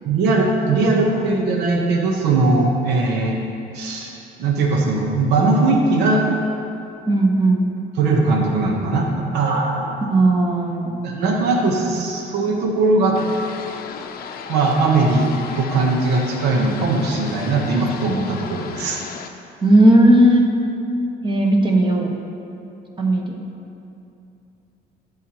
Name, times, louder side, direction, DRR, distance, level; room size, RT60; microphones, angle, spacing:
voice 1, 0.0-3.4 3.7-4.1 4.4-6.2 8.0-10.1 11.0-13.2 14.5-15.3 15.6-19.0, right 3 dB, 90° right, 0 dB, 1.0 m, -19 dB
voice 2, 7.1-7.7 10.0-11.0 19.6-20.5 21.2-22.1 23.0-23.4, right 1 dB, 30° right, 1 dB, 1.1 m, -16 dB
sound 1, 13.2-19.3, left 7 dB, 60° left, 0.6 m, -35 dB
12.0 x 7.7 x 2.9 m, 2.7 s
cardioid pair, 110°, 17 cm